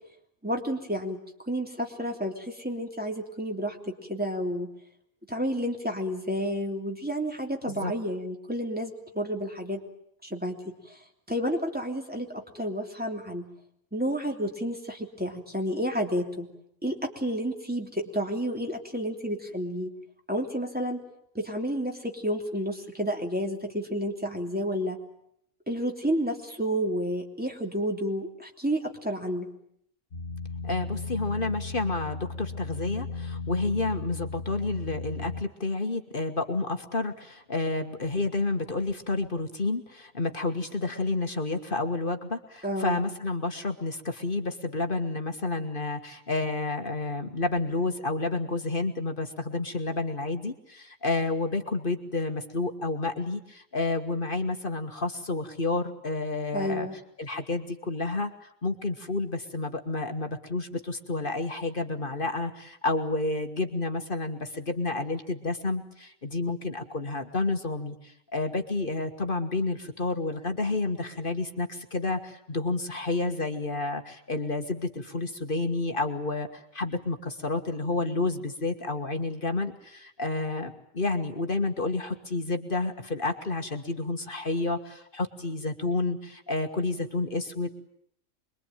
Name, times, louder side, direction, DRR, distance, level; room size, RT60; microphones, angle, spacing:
voice 1, 0.4-1.2 1.5-4.7 5.3-9.8 10.2-11.0 11.3-13.5 13.9-16.5 16.8-19.9 20.3-21.0 21.3-25.0 25.7-29.5 42.6-43.0 56.5-56.9, equal, 5° right, 1 dB, 3.2 m, -30 dB
sound 1, 30.1-35.4, left 4 dB, 65° left, 2.1 m, -36 dB
voice 2, 30.6-56.9 57.2-58.3 58.6-87.7, left 3 dB, 40° left, 6 dB, 1.8 m, -30 dB
26.0 x 22.5 x 9.1 m, 0.71 s
omnidirectional pair, 1.4 m